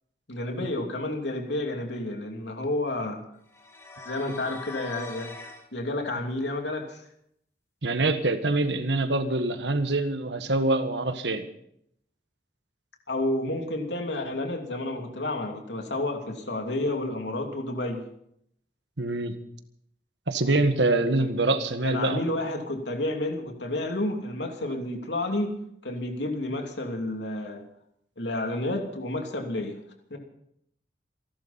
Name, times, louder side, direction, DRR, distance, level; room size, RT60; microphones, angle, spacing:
voice 1, 0.3-3.2 4.0-5.3 5.7-7.0 13.1-18.1 21.2-21.3 21.8-25.6 25.8-27.6 28.2-29.8 30.1-30.2, left 1 dB, 85° left, 3 dB, 2.9 m, -30 dB
sound 1, 3.5-5.7, left 2 dB, 15° left, 2.0 m, -42 dB
voice 2, 7.8-11.5 19.0-19.3 20.3-22.2, right 2 dB, 85° right, 8 dB, 1.6 m, -25 dB
28.0 x 11.5 x 4.3 m, 0.72 s
head